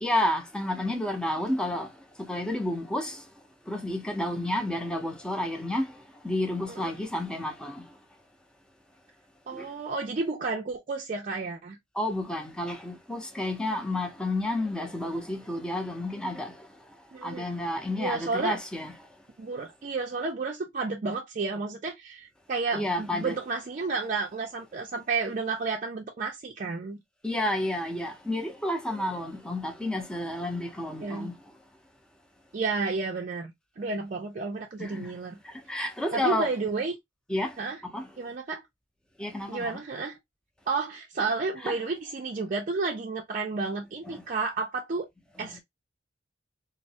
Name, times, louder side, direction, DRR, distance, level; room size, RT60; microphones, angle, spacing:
voice 1, 0.0-1.9 2.2-3.2 3.7-5.9 6.2-7.9 9.5-9.6 12.0-16.5 17.2-18.9 22.7-23.3 27.2-31.3 34.8-35.1 35.5-36.5 37.3-37.6 37.9-38.1 39.2-39.8 41.6-41.7 44.1-44.2 45.4-45.5, left 1 dB, 5° left, 0.5 m, -30 dB
voice 2, 6.7-7.0 9.5-11.8 17.1-17.4 18.0-18.6 19.4-27.0 29.1-29.2 31.0-31.3 32.5-35.4 36.1-37.0 37.6-37.8 38.2-38.6 39.5-40.2 40.7-45.1 45.4-45.6, right 4 dB, 45° right, 0.4 m, -31 dB
3.1 x 2.0 x 2.7 m
head